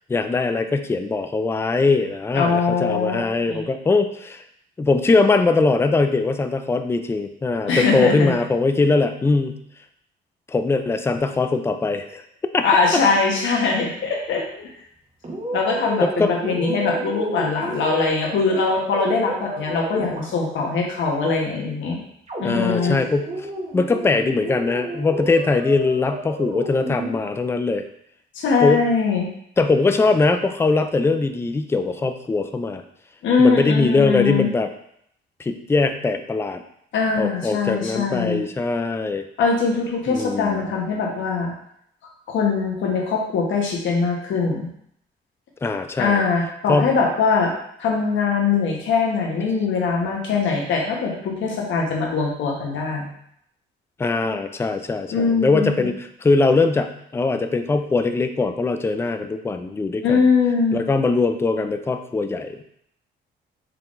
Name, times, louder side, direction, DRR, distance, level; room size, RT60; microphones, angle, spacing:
voice 1, 0.1-4.4 4.8-9.6 10.5-12.2 12.5-12.6 16.0-16.7 22.4-23.5 23.7-27.8 28.6-28.8 29.6-32.8 33.4-34.7 35.4-36.6 37.2-39.2 40.1-40.6 45.6-46.2 46.7-47.0 54.0-60.3 60.7-62.6, left 3 dB, 15° left, 8 dB, 0.3 m, -21 dB
voice 2, 2.3-3.2 3.5-3.6 7.7-8.3 12.6-14.7 15.5-22.0 22.4-23.0 28.3-29.3 33.2-34.5 36.9-38.4 39.4-41.5 42.3-44.7 46.0-47.5 47.8-53.1 55.1-55.8 60.0-60.8, left 4 dB, 75° left, 0 dB, 1.1 m, -22 dB
sound 1, 15.2-20.8 22.3-27.2, right 1 dB, 30° right, 1.2 m, -31 dB
4.6 x 3.6 x 2.5 m, 0.71 s
cardioid pair, 90°, 20 cm